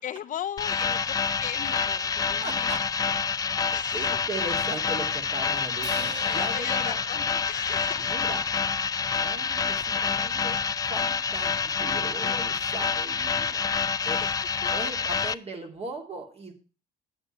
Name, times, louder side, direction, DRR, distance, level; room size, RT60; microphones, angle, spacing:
voice 1, 0.0-2.7 3.7-4.2 6.2-8.1 14.0-14.7 15.2-15.3, left 10 dB, 50° left, 12 dB, 0.7 m, -37 dB
sound 1, 0.6-15.3, left 5 dB, 20° left, 0.4 m, -27 dB
voice 2, 2.4-3.1 3.9-7.0 8.0-8.4 9.0-10.6 10.9-13.8 14.0-14.2 14.7-16.5, right 2 dB, 35° right, 3 dB, 2.6 m, -38 dB
Crash cymbal, 5.8-10.0, right 2 dB, 90° right, 3.0 m, -44 dB
9.1 x 7.9 x 4.3 m, 0.34 s
cardioid pair, 110°, 17 cm